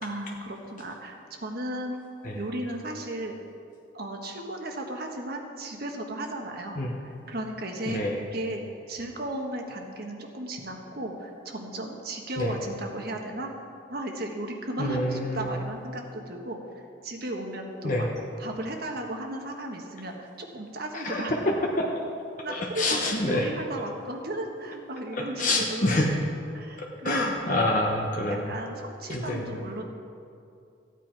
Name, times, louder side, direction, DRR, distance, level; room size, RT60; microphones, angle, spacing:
voice 1, 0.0-1.9 2.3-3.4 3.9-8.6 8.9-13.5 13.9-16.6 17.0-18.1 18.4-21.6 22.4-26.0 26.5-27.2 27.5-27.6 28.3-29.8, right 1 dB, 50° right, 2 dB, 1.3 m, -35 dB
voice 2, 7.9-8.2 12.4-12.5 14.8-15.6 17.8-18.1 21.0-21.9 22.5-23.5 25.2-26.1 27.0-28.5 29.1-29.5, left 1 dB, 40° left, -1 dB, 1.0 m, -27 dB
15.0 x 9.4 x 4.6 m, 2.5 s
head